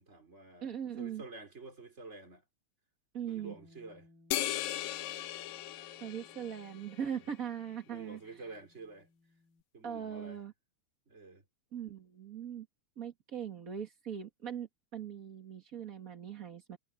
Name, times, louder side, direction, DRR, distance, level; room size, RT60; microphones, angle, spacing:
voice 1, 0.0-2.4 3.2-4.1 7.1-7.3 7.9-9.1 9.7-10.4 11.1-11.5, right 3 dB, 20° right, 3.0 m, -49 dB
voice 2, 0.6-1.2 3.1-3.5 6.0-8.2 9.8-10.5 11.7-12.7 13.0-16.8, right 8 dB, 35° right, 1.3 m, -40 dB
Bass guitar, 3.4-9.6, left 2 dB, 80° right, 4.2 m, -64 dB
sound 1, 4.3-7.0, left 14 dB, 75° left, 2.5 m, -37 dB
omnidirectional pair, 4.2 m